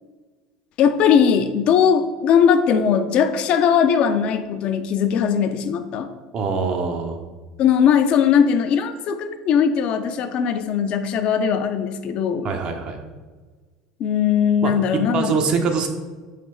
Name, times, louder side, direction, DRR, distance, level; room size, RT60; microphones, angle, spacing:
voice 1, 0.8-6.1 7.6-12.5 14.0-15.4, left 7 dB, 50° left, 9 dB, 0.3 m, -19 dB
voice 2, 6.3-7.2 12.4-13.0 14.6-14.7 15.1-15.9, right 5 dB, 45° right, 5 dB, 0.6 m, -23 dB
3.3 x 3.0 x 4.2 m, 1.4 s
hypercardioid pair, 80°, 2 cm